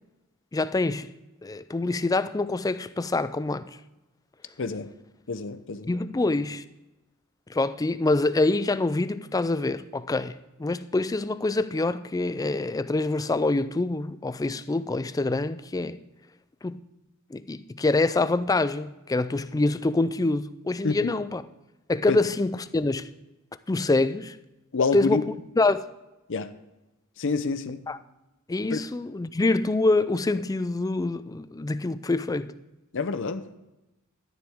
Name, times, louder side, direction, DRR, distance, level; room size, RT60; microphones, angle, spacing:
voice 1, 0.5-1.1 1.4-3.8 5.9-6.6 7.5-16.0 16.6-16.8 17.3-21.4 21.9-23.1 23.7-24.4 24.9-25.9 27.9-28.0 28.5-32.6, left 2 dB, 15° left, 0.4 m, -25 dB
voice 2, 4.6-4.9 5.3-5.9 20.8-21.1 22.1-22.2 24.7-25.2 26.3-26.5 27.2-27.8 28.7-28.8 32.9-33.6, left 4 dB, 60° left, 0.7 m, -27 dB
12.5 x 10.5 x 3.6 m
head